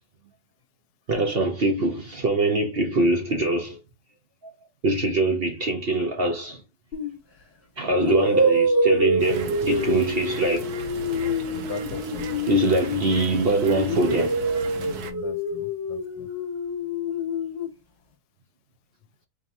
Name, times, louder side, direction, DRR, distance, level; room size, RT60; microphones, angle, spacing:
voice 1, 1.1-3.8 4.8-6.6 7.8-10.7 12.5-14.4, right 2 dB, 50° right, 0.7 m, -23 dB
sound 1, 6.9-7.2 8.0-13.3 13.7-17.7, equal, 40° left, 1.4 m, -26 dB
sound 2, 9.2-15.1, right 6 dB, 80° right, 1.3 m, -36 dB
voice 2, 11.5-12.3 14.8-16.3, left 9 dB, 80° left, 1.2 m, -39 dB
4.6 x 2.9 x 2.6 m
omnidirectional pair, 1.7 m